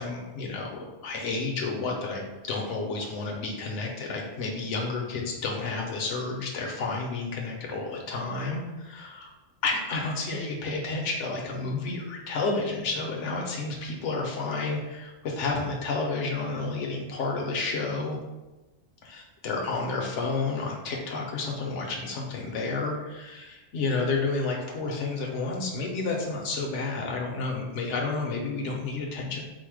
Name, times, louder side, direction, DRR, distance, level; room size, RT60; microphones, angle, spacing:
voice 1, 0.0-9.3 9.6-18.2 19.0-29.4, left 3 dB, 80° left, 0 dB, 1.1 m, -31 dB
4.6 x 2.1 x 4.7 m, 1.1 s
omnidirectional pair, 1.2 m